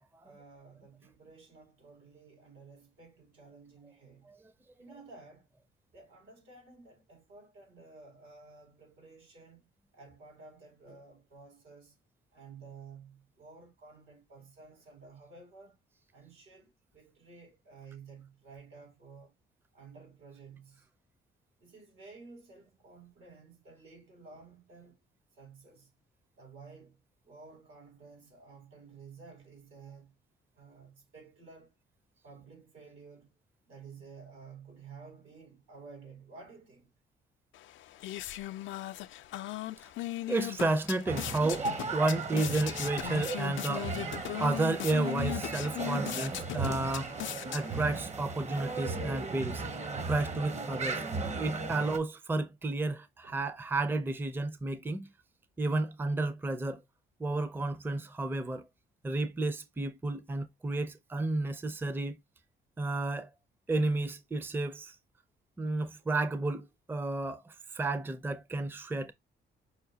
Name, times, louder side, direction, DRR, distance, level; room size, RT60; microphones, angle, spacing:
voice 1, 0.2-4.3 4.8-5.5 5.9-9.7 9.9-12.0 12.3-15.8 16.1-19.3 19.7-20.9 21.6-25.0 25.3-25.9 26.4-30.1 30.5-31.7 32.2-33.3 33.6-36.9 53.2-53.5 65.6-66.1, right 4 dB, 85° right, 3.2 m, -53 dB
sound 1, 37.5-48.1, left 15 dB, 75° left, 0.4 m, -39 dB
voice 2, 40.3-43.9 44.4-47.1 47.5-49.6 50.1-51.0 51.4-55.1 55.6-56.8 57.2-58.7 59.0-62.2 62.8-63.3 63.7-64.9 65.6-69.1, right 2 dB, 10° right, 0.5 m, -32 dB
sound 2, 41.1-52.0, right 3 dB, 35° right, 0.8 m, -36 dB
5.6 x 2.2 x 2.7 m
cardioid pair, 90°, 20 cm